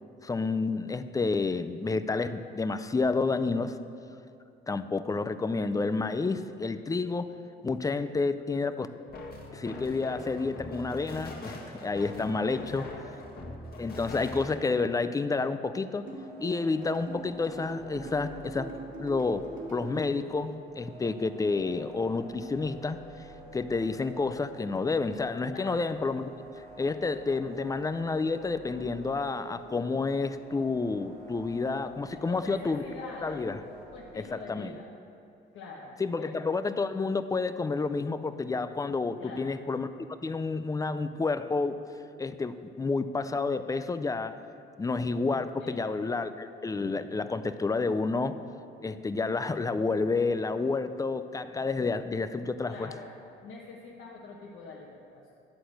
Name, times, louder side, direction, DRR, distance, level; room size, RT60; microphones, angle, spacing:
voice 1, 0.2-3.8 4.7-7.3 7.6-8.9 9.5-12.8 13.8-16.1 16.4-18.7 19.0-23.3 23.5-26.3 26.6-32.8 33.2-33.6 34.2-34.8 36.0-39.9 40.2-41.8 42.2-44.4 44.8-48.4 48.8-52.9, left 3 dB, 15° left, 11 dB, 0.4 m, -30 dB
sound 1, 9.1-14.7, left 2 dB, 50° left, 1.5 m, -42 dB
voice 2, 12.6-13.2 25.5-25.9 32.1-34.9 35.5-36.3 39.2-39.6 45.6-45.9 52.6-53.2 53.4-55.3, left 4 dB, 85° left, -4 dB, 1.1 m, -45 dB
sound 2, 16.0-34.3, right 2 dB, 55° right, 2.3 m, -49 dB
sound 3, 16.1-20.0, right 3 dB, 75° right, 2.3 m, -41 dB
11.5 x 4.2 x 7.8 m, 2.6 s
cardioid pair, 90°, 20 cm